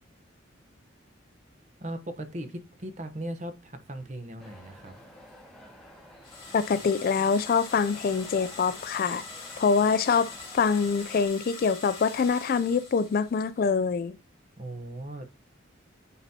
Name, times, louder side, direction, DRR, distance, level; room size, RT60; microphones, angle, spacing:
voice 1, 1.8-4.9 14.6-15.4, right 1 dB, 35° right, 0.9 m, -38 dB
sound 1, 4.4-11.3, equal, ahead, 1.8 m, -51 dB
sound 2, 6.2-13.6, left 4 dB, 25° left, 2.4 m, -43 dB
voice 2, 6.5-9.2 9.6-14.2, left 5 dB, 50° left, 0.3 m, -25 dB
9.3 x 3.9 x 2.8 m
head